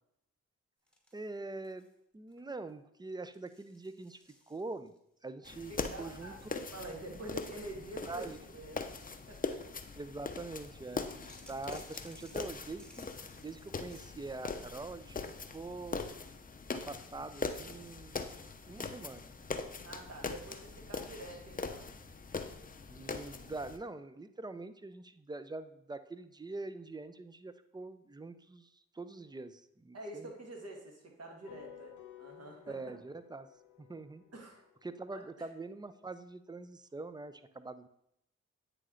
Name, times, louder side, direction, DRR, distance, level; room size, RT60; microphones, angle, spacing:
sound 1, 0.9-1.9 2.3-2.7 3.3-5.0 5.6-7.3 7.8-10.0 11.3-14.1, left 1 dB, 5° left, 1.2 m, -61 dB
voice 1, 1.1-1.9 2.1-4.2 4.5-4.9 5.2-5.7 6.0-6.3 8.1-8.4 10.0-16.0 16.7-18.2 18.7-19.3 22.9-30.3 32.7-33.5 33.8-34.2 34.8-37.9, right 3 dB, 15° right, 12 dB, 0.5 m, -44 dB
sound 2, 5.4-23.8, left 4 dB, 25° left, 0.6 m, -42 dB
voice 2, 5.7-8.8 9.1-9.6 19.8-21.9 29.9-32.8 34.3-34.6 35.1-35.5, right 2 dB, 50° right, 1 dB, 1.7 m, -47 dB
sound 3, 31.4-36.1, left 13 dB, 75° left, 0.9 m, -57 dB
9.0 x 3.2 x 3.8 m, 0.76 s
supercardioid pair, 40°, 32 cm